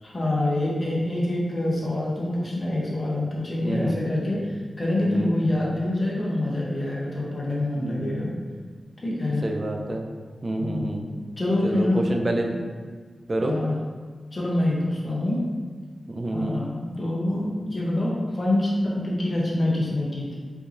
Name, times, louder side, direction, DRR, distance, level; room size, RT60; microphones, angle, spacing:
voice 1, 0.0-8.3 9.0-9.5 10.6-11.1 11.4-12.0 13.4-13.8 14.3-15.4 16.3-20.4, left 1 dB, 30° left, -5 dB, 0.8 m, -26 dB
voice 2, 3.6-4.0 5.0-5.4 7.7-8.4 9.4-10.0 10.4-11.0 11.6-12.6 13.3-13.6 16.1-16.6, right 1 dB, 30° right, 2 dB, 0.3 m, -28 dB
4.5 x 2.7 x 2.5 m, 1.5 s
wide cardioid pair, 155°, 0 cm